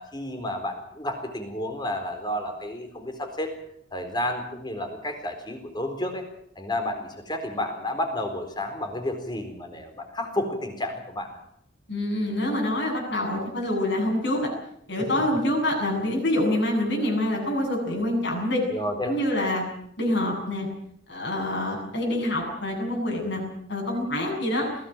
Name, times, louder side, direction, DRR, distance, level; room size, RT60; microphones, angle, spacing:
voice 1, 0.0-3.5 3.9-6.3 6.6-11.4 15.1-15.2 18.7-19.1, left 1 dB, 20° left, 6 dB, 4.1 m, -31 dB
voice 2, 11.9-14.5 14.9-18.6 19.0-19.6 20.0-20.7 21.1-23.4 23.7-24.7, left 1 dB, 60° left, 1 dB, 7.8 m, -26 dB
21.0 x 17.0 x 9.0 m, 0.70 s
head